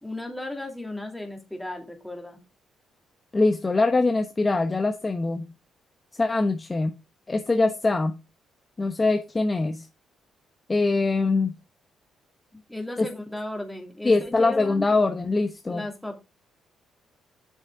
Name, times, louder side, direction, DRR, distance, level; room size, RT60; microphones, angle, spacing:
voice 1, 0.0-2.4 12.5-14.9 15.7-16.2, left 1 dB, 5° left, 2.8 m, -35 dB
voice 2, 3.3-5.5 6.2-6.9 7.3-8.2 8.8-9.9 10.7-11.5 13.0-13.1 14.0-15.8, left 3 dB, 25° left, 1.0 m, -23 dB
8.7 x 6.4 x 3.6 m
cardioid pair, 90°, 0 cm